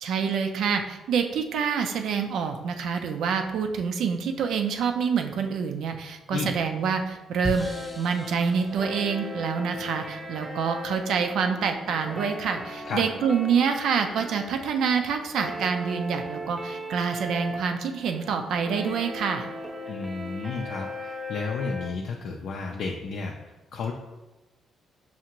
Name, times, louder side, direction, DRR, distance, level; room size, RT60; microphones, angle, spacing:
voice 1, 0.0-7.7 8.0-19.5, right 6 dB, 75° right, 5 dB, 0.4 m, -27 dB
sound 1, 3.1-3.2 5.2-5.3 7.4-9.9, left 1 dB, 25° left, 0.8 m, -38 dB
sound 2, 7.6-21.9, left 1 dB, 20° right, 0.6 m, -38 dB
voice 2, 19.9-23.3 23.7-23.9, left 4 dB, 70° left, 0 dB, 0.4 m, -32 dB
5.5 x 2.4 x 2.9 m, 1.1 s
cardioid pair, 90°, 0 cm